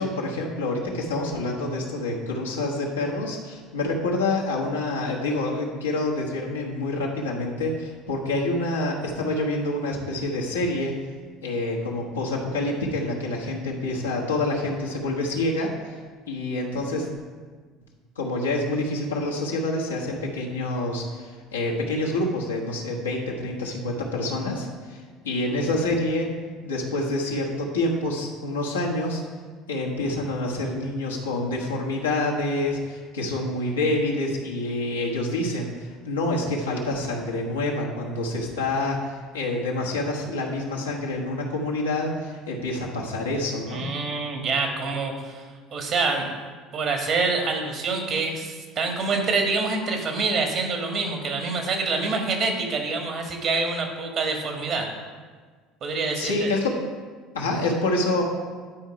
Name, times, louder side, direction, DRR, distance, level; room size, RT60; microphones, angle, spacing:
voice 1, 0.0-10.9 11.4-15.9 16.3-17.1 18.2-26.3 26.6-29.2 29.7-43.8 56.2-56.8 57.3-58.2, left 2 dB, 85° left, -3 dB, 1.3 m, -27 dB
voice 2, 43.7-46.3 46.7-54.9 55.8-56.5, right 4 dB, 50° right, 3 dB, 1.6 m, -26 dB
10.5 x 4.5 x 4.9 m, 1.5 s
hypercardioid pair, 65°, 0 cm